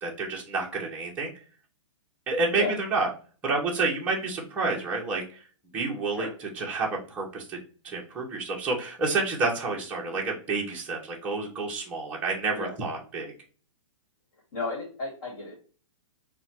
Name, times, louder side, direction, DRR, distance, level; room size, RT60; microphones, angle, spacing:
voice 1, 0.0-1.3 2.3-3.1 3.4-5.4 5.7-7.6 7.8-13.3, right 3 dB, 10° right, -3 dB, 0.6 m, -29 dB
voice 2, 14.5-15.6, left 3 dB, 45° left, -2 dB, 1.4 m, -33 dB
4.2 x 2.1 x 4.2 m, 0.39 s
hypercardioid pair, 170°, 16 cm